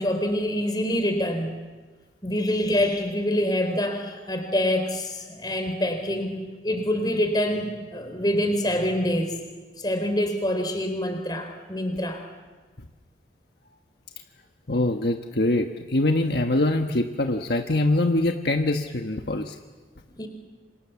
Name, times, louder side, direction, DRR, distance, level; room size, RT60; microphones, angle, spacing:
voice 1, 0.0-1.5 2.2-9.4 9.8-12.2 20.2-20.3, left 1 dB, 20° left, 5 dB, 4.0 m, -26 dB
voice 2, 14.7-19.5, left 2 dB, 60° left, 4 dB, 1.3 m, -23 dB
28.0 x 26.5 x 7.2 m, 1.4 s
head